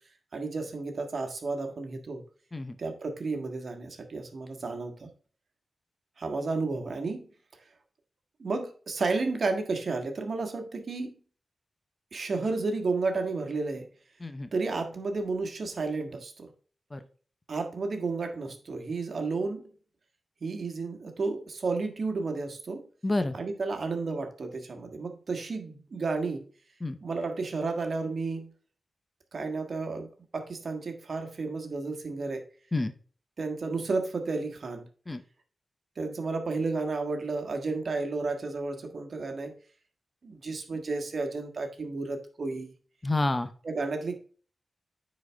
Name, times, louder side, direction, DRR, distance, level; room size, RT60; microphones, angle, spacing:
voice 1, 0.3-2.2 2.8-5.1 6.2-7.3 8.4-11.1 12.1-13.9 14.5-16.5 17.5-19.7 20.4-22.8 23.3-26.4 27.0-28.5 29.3-32.4 33.4-34.9 36.0-39.5 40.2-42.7 43.6-44.2, right 3 dB, 60° right, 5 dB, 1.5 m, -32 dB
voice 2, 14.2-14.5 16.9-17.0 23.0-23.4 26.8-27.0 32.7-32.9 35.1-35.2 43.0-43.5, left 2 dB, 25° left, 10 dB, 0.8 m, -29 dB
9.5 x 4.2 x 3.5 m, 0.41 s
wide cardioid pair, 85°, 0 cm